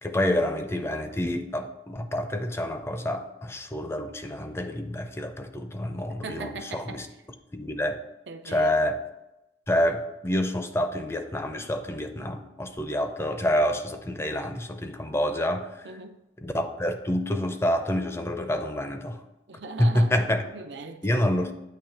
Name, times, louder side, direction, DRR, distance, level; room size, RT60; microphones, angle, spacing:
voice 1, 0.0-7.1 7.5-8.0 8.5-9.0 9.7-15.9 16.4-19.2 19.8-20.4 21.0-21.5, left 1 dB, 15° left, 0.5 m, -27 dB
voice 2, 6.2-7.0 8.3-8.8 15.8-16.2 19.5-20.2 20.5-21.5, right 3 dB, 80° right, 0.6 m, -39 dB
8.6 x 3.2 x 5.6 m
head